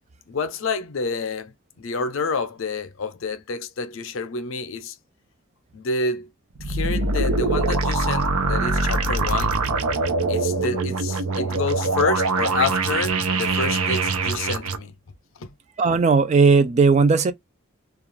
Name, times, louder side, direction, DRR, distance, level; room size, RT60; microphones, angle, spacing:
voice 1, 0.3-1.5 1.8-5.0 5.7-6.3 6.6-9.6 10.3-15.0 15.4-15.5, left 4 dB, 65° left, 0.5 m, -28 dB
sound 1, 6.5-14.8, right 3 dB, 85° right, 0.6 m, -23 dB
voice 2, 15.8-17.3, right 4 dB, 30° right, 0.3 m, -16 dB
2.4 x 2.3 x 3.1 m
head